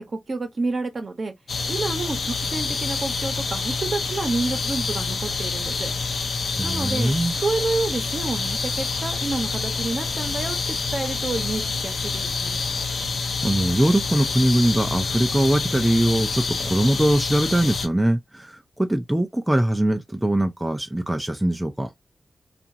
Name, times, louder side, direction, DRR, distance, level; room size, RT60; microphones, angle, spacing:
voice 1, 0.0-1.3 1.7-5.9 6.6-7.1 7.4-12.6, right 3 dB, 55° right, 0.9 m, -29 dB
sound 1, 1.5-17.9, left 4 dB, 80° left, 0.7 m, -27 dB
voice 2, 6.6-7.4 13.4-21.9, right 1 dB, 10° right, 0.5 m, -22 dB
2.8 x 2.5 x 2.6 m
cardioid pair, 75°, 0 cm